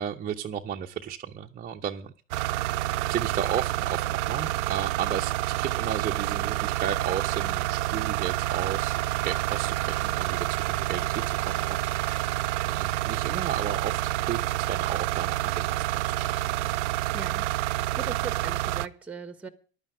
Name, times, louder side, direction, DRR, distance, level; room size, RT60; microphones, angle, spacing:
voice 1, 0.0-2.1 3.1-15.9 16.1-16.6, right 9 dB, 20° right, 0.7 m, -34 dB
sound 1, 2.3-18.9, right 16 dB, 60° right, 0.6 m, -28 dB
voice 2, 17.1-19.5, right 4 dB, 5° right, 1.1 m, -39 dB
11.5 x 8.8 x 8.2 m
hypercardioid pair, 100°, 40 cm